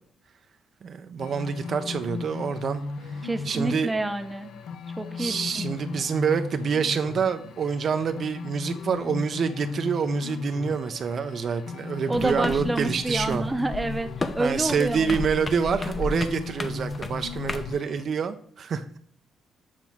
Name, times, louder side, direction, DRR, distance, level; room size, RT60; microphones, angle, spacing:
voice 1, 0.8-2.8 3.2-3.9 5.2-13.4 14.4-18.8, right 6 dB, 55° right, 8 dB, 0.4 m, -27 dB
sound 1, 1.2-18.0, left 4 dB, 75° left, 0.6 m, -37 dB
voice 2, 3.2-4.5 5.0-5.6 12.1-15.2, right 2 dB, 15° right, 8 dB, 0.6 m, -28 dB
sound 2, 12.1-17.7, left 2 dB, 30° left, 0.6 m, -35 dB
7.3 x 3.0 x 5.8 m, 0.64 s
cardioid pair, 90°, 0 cm